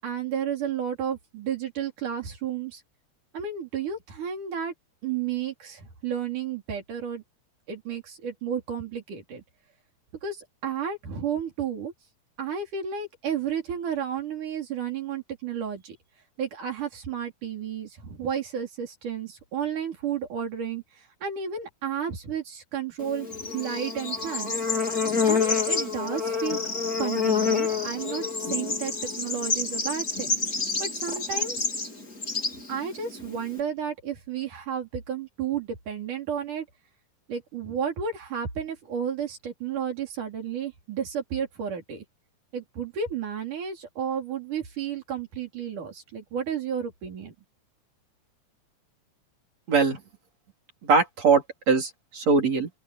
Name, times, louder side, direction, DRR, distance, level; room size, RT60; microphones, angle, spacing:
voice 1, 0.0-2.8 3.3-4.7 5.0-7.2 7.7-9.4 10.2-11.9 12.4-16.0 16.4-23.3 23.5-24.6 25.3-26.6 27.0-30.4 30.8-31.7 32.7-36.7 37.3-42.0 42.5-47.4, right 8 dB, 85° right, 5.4 m, -32 dB
Bird / Insect, 23.0-33.6, left 5 dB, 30° left, 3.9 m, -28 dB
voice 2, 49.7-50.0 50.8-52.7, right 4 dB, 55° right, 5.2 m, -22 dB
open air
omnidirectional pair, 3.5 m